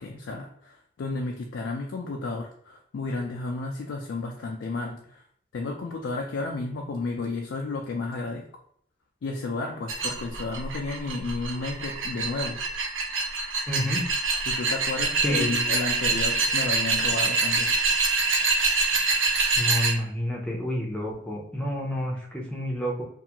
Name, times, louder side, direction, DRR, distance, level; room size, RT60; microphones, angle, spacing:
voice 1, 0.0-5.2 5.5-8.4 9.2-12.6 14.5-18.0, left 3 dB, 85° left, 2 dB, 0.3 m, -32 dB
sound 1, 9.9-19.9, right 3 dB, 90° right, 0.5 m, -25 dB
voice 2, 13.7-14.0 15.2-15.6 19.6-23.0, equal, 5° left, -2 dB, 0.5 m, -29 dB
2.5 x 2.3 x 2.8 m, 0.66 s
head